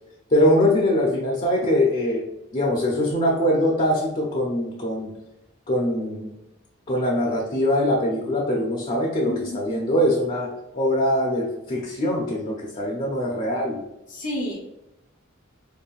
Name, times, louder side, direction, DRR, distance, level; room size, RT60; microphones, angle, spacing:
voice 1, 0.3-2.2 2.5-5.1 5.7-6.3 6.9-13.8, left 1 dB, 35° left, -1 dB, 0.6 m, -22 dB
voice 2, 9.3-9.6 14.1-14.6, left 1 dB, 70° left, -3 dB, 0.8 m, -30 dB
5.3 x 2.2 x 2.4 m, 0.94 s
head